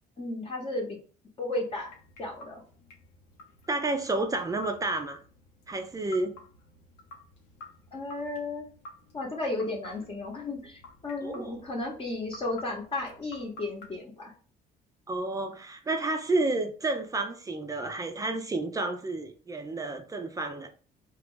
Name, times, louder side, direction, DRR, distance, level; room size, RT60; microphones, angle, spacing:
voice 1, 0.2-1.0 1.4-1.9 2.2-2.6 7.9-8.7 9.1-14.3, left 2 dB, 35° left, -2 dB, 0.9 m, -34 dB
sound 1, 1.7-14.0, left 2 dB, 90° left, 0.8 m, -51 dB
voice 2, 3.7-5.2 5.7-6.4 11.2-11.5 15.1-20.7, right 2 dB, 20° right, 6 dB, 0.5 m, -30 dB
3.0 x 2.3 x 3.7 m, 0.41 s
cardioid pair, 110°, 17 cm